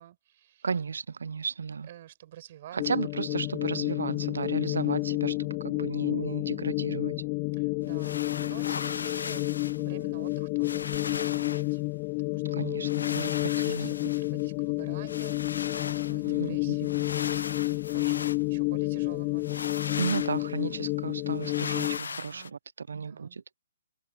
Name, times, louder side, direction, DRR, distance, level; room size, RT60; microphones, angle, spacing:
voice 1, 0.0-0.7 1.8-2.9 3.3-3.6 4.6-5.1 7.6-9.5 9.8-11.8 12.2-12.6 13.5-15.5 15.8-20.3 22.0-22.6 22.9-23.4, right 13 dB, 40° right, 6.6 m, -50 dB
voice 2, 0.6-1.9 2.7-7.1 12.5-13.9 16.2-16.8 20.0-23.4, right 5 dB, 80° right, 0.5 m, -34 dB
sound 1, 2.8-22.0, left 31 dB, 25° left, 0.5 m, -30 dB
sound 2, 7.9-9.8 10.3-10.4 10.6-11.7 12.8-14.5 15.1-16.3 16.8-18.4 19.4-20.5 21.4-22.5, left 5 dB, 80° left, 0.3 m, -38 dB
hypercardioid pair, 160°, 0 cm